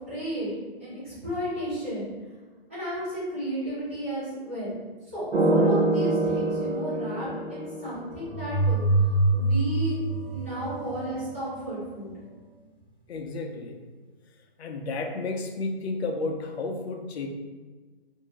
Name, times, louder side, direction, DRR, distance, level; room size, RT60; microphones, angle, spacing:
voice 1, 0.1-0.5 0.8-2.1 2.7-4.8 5.0-10.0 10.3-12.2, equal, 15° right, -12 dB, 0.5 m, -33 dB
sound 1, 5.3-8.4 10.1-11.8, right 2 dB, 85° right, 0.7 m, -27 dB
sound 2, 8.3-11.1, right 2 dB, 10° left, 0.8 m, -25 dB
voice 2, 13.1-13.8 14.6-17.3, left 3 dB, 90° left, 3 dB, 0.6 m, -32 dB
2.6 x 2.6 x 3.0 m, 1.3 s
hypercardioid pair, 170°, 31 cm